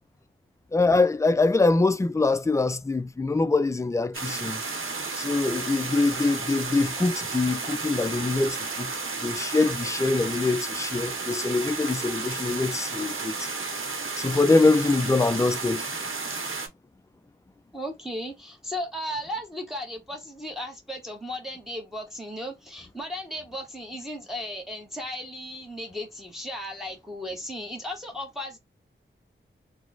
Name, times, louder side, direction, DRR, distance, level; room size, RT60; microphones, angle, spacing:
voice 1, 0.7-4.6 5.2-8.9 9.2-13.5 14.2-15.9, left 3 dB, 15° left, 0.3 m, -24 dB
sound 1, 4.1-16.7, right 4 dB, 70° right, 0.8 m, -33 dB
voice 2, 17.7-28.6, equal, ahead, 0.9 m, -35 dB
2.9 x 2.0 x 3.8 m
cardioid pair, 55°, 21 cm